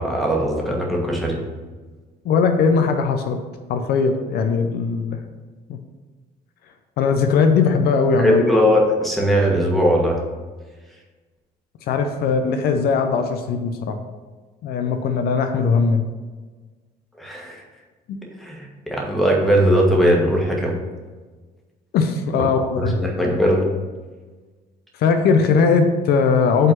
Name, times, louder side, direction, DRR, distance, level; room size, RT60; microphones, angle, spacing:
voice 1, 0.0-1.4 8.2-10.2 17.2-17.6 18.4-20.7 22.3-22.4 22.8-23.6, equal, ahead, -2 dB, 1.4 m, -19 dB
voice 2, 2.2-3.4 3.7-5.2 5.7-5.8 7.0-8.4 11.9-14.0 14.6-16.0 21.9-22.9 25.0-26.7, left 5 dB, 70° left, 6 dB, 0.6 m, -19 dB
5.4 x 3.7 x 5.9 m, 1.3 s
cardioid pair, 110°, 17 cm